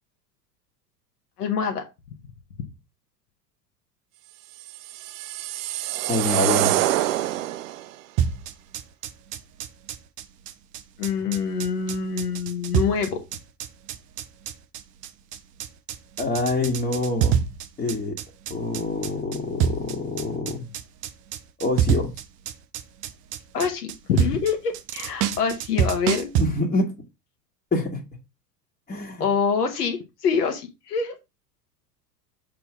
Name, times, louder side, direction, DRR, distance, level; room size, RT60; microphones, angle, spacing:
voice 1, 1.4-1.8 11.0-13.2 23.5-26.3 29.2-31.1, left 6 dB, 65° left, 1.6 m, -25 dB
sound 1, 4.7-7.9, right 14 dB, 55° right, 0.6 m, -25 dB
voice 2, 6.1-7.0 16.2-17.4 17.8-18.1 18.5-20.7 21.6-22.1 26.4-26.9 27.7-28.0 28.9-29.2, left 2 dB, 15° left, 1.6 m, -26 dB
sound 2, 8.2-26.5, right 9 dB, 20° right, 0.3 m, -27 dB
6.8 x 3.8 x 6.0 m
figure-of-eight pair, 80°, 49 cm